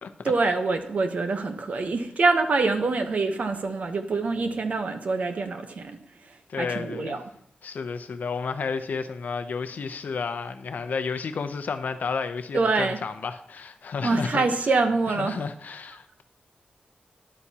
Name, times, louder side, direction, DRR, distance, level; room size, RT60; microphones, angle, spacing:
voice 1, 0.2-6.0 6.6-7.2 12.5-13.0 14.0-15.4, right 3 dB, 55° right, 1.0 m, -25 dB
voice 2, 6.5-7.2 7.6-14.5 15.1-16.2, left 5 dB, 65° left, 0.7 m, -31 dB
12.5 x 11.0 x 2.9 m
wide cardioid pair, 175°, 3 cm